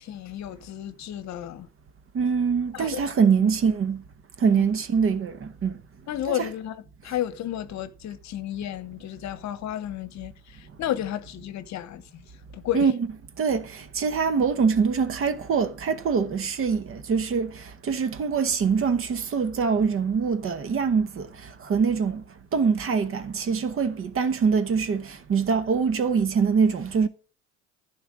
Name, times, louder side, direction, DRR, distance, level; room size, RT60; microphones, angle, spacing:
voice 1, 0.0-1.7 2.7-3.0 4.4-4.7 6.1-10.3 10.8-12.2 12.5-12.9, left 12 dB, 55° left, 0.9 m, -32 dB
voice 2, 2.1-4.0 4.4-5.8 6.3-6.5 12.7-12.9 13.4-22.2 22.5-27.1, right 6 dB, 40° right, 1.1 m, -24 dB
11.0 x 4.5 x 6.2 m
supercardioid pair, 90°, 34 cm